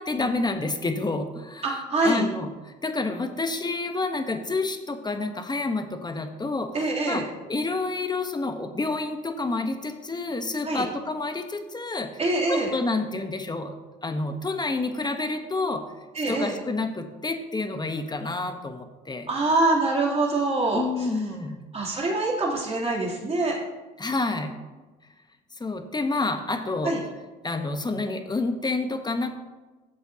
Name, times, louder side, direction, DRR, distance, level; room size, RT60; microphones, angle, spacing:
voice 1, 0.0-12.1 12.5-13.7 14.0-15.8 16.3-19.3 20.7-21.6 24.0-24.6 25.6-27.0 27.4-29.3, left 3 dB, 20° left, 7 dB, 1.2 m, -29 dB
voice 2, 1.6-2.2 6.7-7.2 10.6-10.8 12.2-12.7 16.1-16.5 19.3-20.8 21.7-23.6 26.8-27.0, right 2 dB, 30° right, -4 dB, 3.2 m, -24 dB
13.0 x 7.7 x 2.9 m, 1.2 s
supercardioid pair, 75°, 20 cm